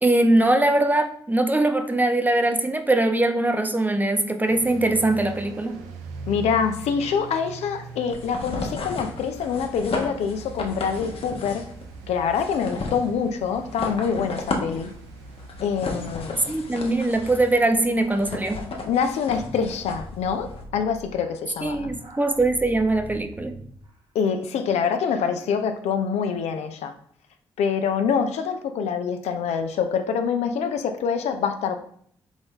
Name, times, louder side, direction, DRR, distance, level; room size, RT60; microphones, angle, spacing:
voice 1, 0.0-5.8 16.5-18.6 21.6-23.6, right 2 dB, 15° right, 7 dB, 0.6 m, -21 dB
sound 1, 4.5-16.6, right 3 dB, 85° right, 0.4 m, -42 dB
voice 2, 6.3-11.6 12.1-14.9 15.6-16.4 18.8-21.9 24.1-26.9 27.6-31.7, left 6 dB, 70° left, 7 dB, 0.5 m, -25 dB
sound 2, 8.1-20.6, left 3 dB, 55° left, 0.9 m, -34 dB
sound 3, 17.0-23.9, right 1 dB, 50° right, 1.3 m, -43 dB
3.9 x 3.5 x 3.6 m, 0.62 s
hypercardioid pair, 40°, 12 cm